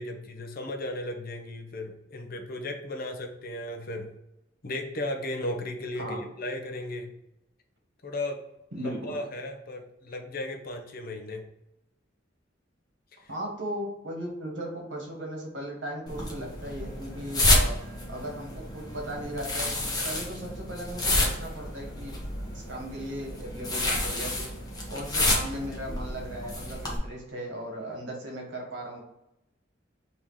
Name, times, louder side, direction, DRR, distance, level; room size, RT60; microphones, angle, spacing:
voice 1, 0.0-4.1 4.6-7.2 8.0-8.4 8.7-11.4 13.2-13.3, left 1 dB, 50° left, 4 dB, 0.7 m, -35 dB
voice 2, 8.7-9.2 13.3-17.7 18.1-22.1 22.5-24.5 24.9-29.0, right 1 dB, 70° right, 0 dB, 1.3 m, -37 dB
sound 1, 16.1-27.0, left 1 dB, 20° left, 0.9 m, -29 dB
3.7 x 2.9 x 4.7 m, 0.86 s
head